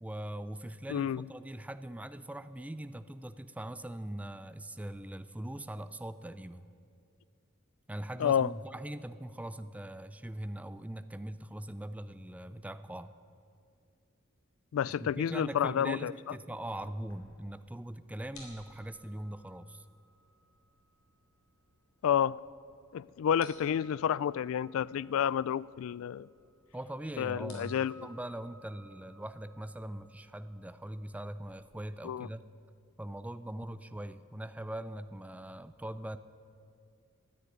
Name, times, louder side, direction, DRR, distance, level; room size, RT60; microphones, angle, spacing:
voice 1, 0.0-6.7 7.9-13.1 15.0-19.9 26.7-32.4 33.0-36.2, right 1 dB, 5° right, 0.4 m, -41 dB
voice 2, 0.9-1.2 8.2-8.5 14.7-16.1 22.0-22.4 22.9-26.3 27.2-28.1 32.0-32.3, left 9 dB, 70° left, 0.3 m, -30 dB
sound 1, 16.8-31.5, left 1 dB, 90° left, 3.5 m, -59 dB
13.5 x 9.7 x 9.5 m
head